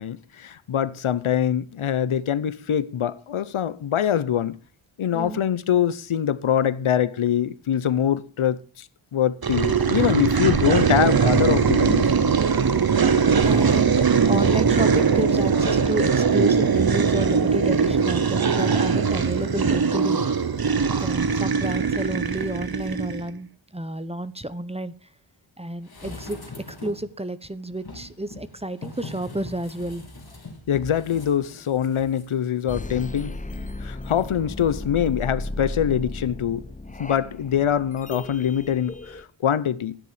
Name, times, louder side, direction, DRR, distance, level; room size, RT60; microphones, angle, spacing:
voice 1, 0.0-4.6 5.0-8.9 9.1-12.1 30.7-33.4 33.8-36.6 37.0-40.0, left 9 dB, 85° left, 0.8 m, -24 dB
sound 1, 9.4-23.3, right 5 dB, 50° right, 1.1 m, -21 dB
voice 2, 13.2-20.6 20.9-24.9 25.6-26.4 26.7-30.0, right 1 dB, 15° right, 0.8 m, -31 dB
sound 2, 25.8-27.1 27.8-32.3 32.6-32.7, left 2 dB, 50° left, 3.5 m, -41 dB
sound 3, 32.7-39.2, left 2 dB, 15° left, 0.9 m, -35 dB
13.5 x 9.9 x 4.9 m
wide cardioid pair, 100°, 48 cm